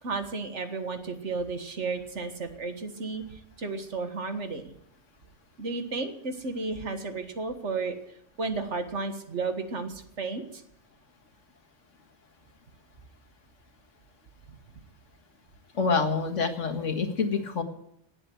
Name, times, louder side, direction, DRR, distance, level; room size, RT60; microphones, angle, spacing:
voice 1, 0.0-4.7 5.6-8.0 8.4-10.6, right 3 dB, 70° right, 7 dB, 1.9 m, -33 dB
voice 2, 15.7-17.6, left 4 dB, 85° left, 7 dB, 1.9 m, -27 dB
18.5 x 7.8 x 7.9 m, 0.75 s
omnidirectional pair, 1.2 m